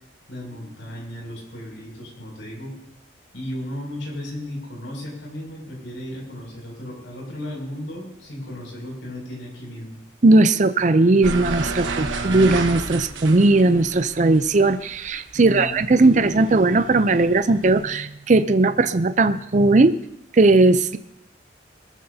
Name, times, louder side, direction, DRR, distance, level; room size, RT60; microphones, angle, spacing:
voice 1, 0.3-2.7 3.3-10.0 11.8-12.4 15.3-15.8, left 1 dB, 90° left, -2 dB, 6.6 m, -35 dB
voice 2, 10.2-19.9 20.3-21.0, right 2 dB, 40° right, 11 dB, 0.5 m, -17 dB
sound 1, 11.2-15.9 16.2-17.8, right 3 dB, 90° right, 1.3 m, -30 dB
24.5 x 14.5 x 2.8 m, 0.77 s
head